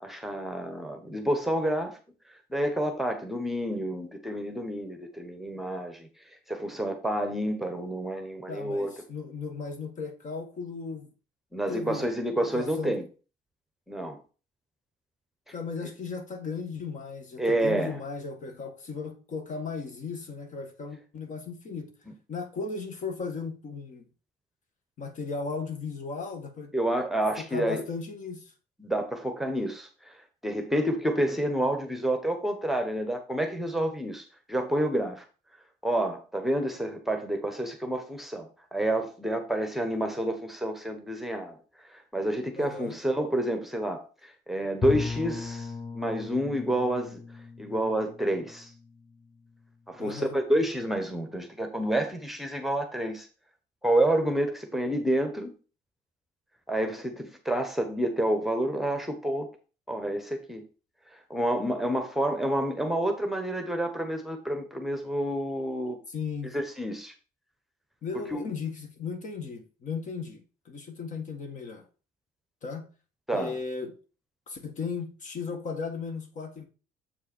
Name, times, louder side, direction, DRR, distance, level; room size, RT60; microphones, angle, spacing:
voice 1, 0.0-2.0 2.5-6.1 6.5-8.9 11.5-13.0 13.9-14.2 17.4-18.0 26.7-27.8 28.8-30.2 30.4-35.2 35.8-41.6 41.9-47.2 47.6-48.7 49.9-53.3 53.8-55.5 56.7-59.5 59.9-60.6 61.1-66.0 66.5-67.1 68.3-68.4 73.3-73.5, right 1 dB, ahead, 1.1 m, -29 dB
voice 2, 8.5-11.1 11.7-13.0 15.5-21.9 22.3-24.0 25.0-26.7 27.4-28.5 42.5-42.9 50.0-50.4 66.1-66.5 68.0-71.8 72.6-72.9 73.3-73.9 74.5-76.7, left 5 dB, 50° left, 1.6 m, -36 dB
Bowed string instrument, 44.8-49.6, left 4 dB, 20° left, 0.8 m, -37 dB
7.5 x 4.7 x 4.4 m
cardioid pair, 110°, 17 cm